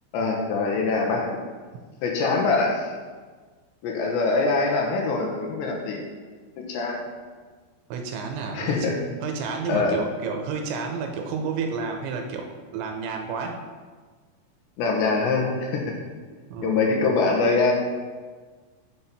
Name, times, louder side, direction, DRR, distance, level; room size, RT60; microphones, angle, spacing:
voice 1, 0.1-1.3 2.0-2.9 3.8-6.0 6.6-7.0 8.5-9.0 9.7-10.0 14.8-16.0 16.6-17.7, left 3 dB, 75° left, 0 dB, 3.1 m, -23 dB
voice 2, 7.9-8.9 9.2-13.6 16.5-17.1, right 5 dB, 85° right, 3 dB, 2.9 m, -31 dB
8.8 x 7.4 x 4.2 m, 1.5 s
omnidirectional pair, 5.5 m